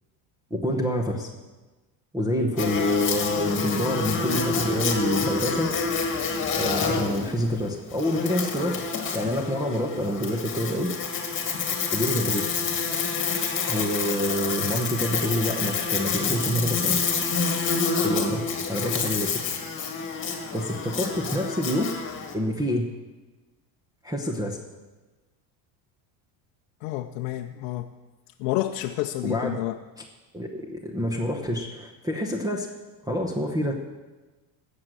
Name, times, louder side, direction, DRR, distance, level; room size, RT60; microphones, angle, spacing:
voice 1, 0.5-1.3 2.1-5.7 6.5-8.8 9.1-10.9 11.9-12.5 13.7-17.0 18.0-18.4 18.7-19.3 20.5-21.9 22.3-22.9 24.0-24.6 29.2-29.6 30.3-32.7 33.1-33.7, equal, 10° right, 1 dB, 1.0 m, -27 dB
Buzz, 2.6-22.3, left 5 dB, 25° left, 1.8 m, -28 dB
voice 2, 26.8-27.9 28.4-29.8, left 14 dB, 85° left, 4 dB, 0.8 m, -29 dB
17.0 x 6.6 x 7.6 m, 1.2 s
cardioid pair, 145°, 45 cm